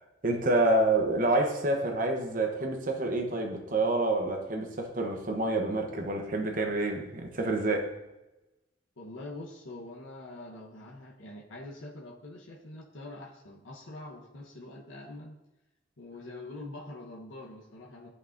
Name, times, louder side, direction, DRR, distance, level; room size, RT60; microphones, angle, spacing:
voice 1, 0.2-7.9, right 2 dB, 45° right, 0.9 m, -28 dB
voice 2, 9.0-15.4 16.0-18.1, left 2 dB, 80° left, 1.1 m, -44 dB
11.0 x 5.5 x 2.6 m
head